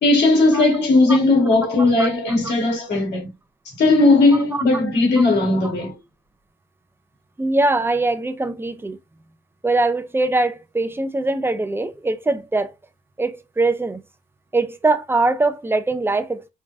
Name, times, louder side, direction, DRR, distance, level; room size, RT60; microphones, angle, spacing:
voice 1, 0.0-3.3 3.7-6.0, left 2 dB, 60° left, 2.1 m, -17 dB
voice 2, 7.4-9.0 9.6-12.7 13.2-14.0 14.5-16.5, right 2 dB, 10° right, 0.5 m, -22 dB
4.7 x 2.2 x 2.5 m
cardioid pair, 90°, 20 cm